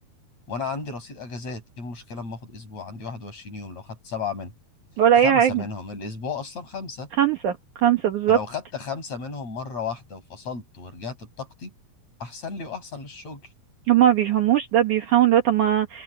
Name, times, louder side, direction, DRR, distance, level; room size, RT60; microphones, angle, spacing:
voice 1, 0.5-4.5 5.2-7.1 8.3-11.7 12.2-13.4, left 5 dB, 40° left, 7.6 m, -34 dB
voice 2, 5.0-5.5 7.2-7.6 7.8-8.4 13.9-16.0, right 10 dB, 60° right, 2.4 m, -19 dB
open air
omnidirectional pair, 4.7 m